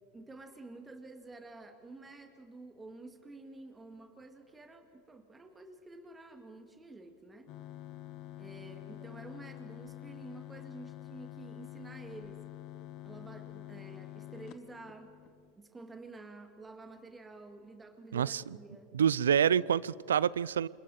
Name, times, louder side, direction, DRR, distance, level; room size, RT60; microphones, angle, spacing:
voice 1, 0.1-7.5 8.4-12.4 13.0-15.2 15.5-18.9, right 2 dB, 15° right, 2.3 m, -50 dB
sound 1, 7.5-15.5, left 15 dB, 50° left, 1.3 m, -47 dB
voice 2, 18.1-18.4 18.9-20.7, right 8 dB, 80° right, 0.5 m, -27 dB
29.5 x 27.0 x 4.3 m
hypercardioid pair, 85°, 0 cm